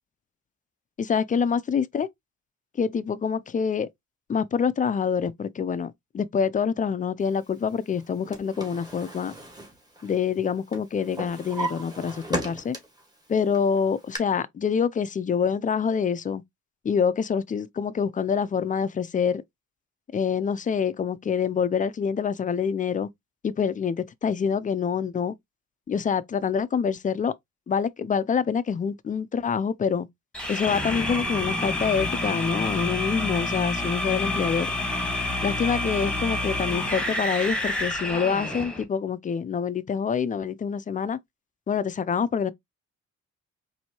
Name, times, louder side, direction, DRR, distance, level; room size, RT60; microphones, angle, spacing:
voice 1, 1.0-2.1 2.8-3.9 4.3-9.3 10.0-12.8 13.3-16.4 16.8-19.4 20.1-23.1 23.4-25.3 25.9-27.3 27.7-30.1 30.5-34.7 35.4-41.2 41.7-42.5, left 6 dB, 25° left, 0.4 m, -26 dB
Drawer open or close, 8.0-10.4 10.7-13.1 13.5-14.2, right 1 dB, 15° right, 1.5 m, -35 dB
sound 1, 30.3-38.8, left 2 dB, 5° left, 1.3 m, -28 dB
4.2 x 2.7 x 2.9 m
cardioid pair, 90°, 30 cm